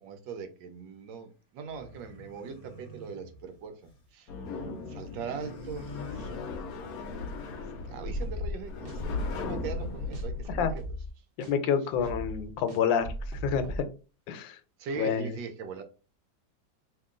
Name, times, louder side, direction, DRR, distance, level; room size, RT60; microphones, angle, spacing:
voice 1, 0.0-3.7 4.1-4.4 4.9-6.3 7.8-10.8 14.8-15.8, right 5 dB, 75° right, 1.3 m, -40 dB
sound 1, 1.7-4.1 4.4-6.9, equal, 30° left, 0.8 m, -49 dB
sound 2, 4.3-10.5, left 3 dB, 65° left, 0.9 m, -36 dB
sound 3, 8.0-8.6 8.9-9.0 9.4-9.8 10.1-11.1 11.4-11.5 11.9-13.8, equal, 50° right, 0.7 m, -38 dB
voice 2, 11.5-13.1 13.4-13.9 14.3-14.6 15.0-15.3, left 7 dB, 80° left, 1.3 m, -28 dB
2.9 x 2.9 x 3.6 m
omnidirectional pair, 2.1 m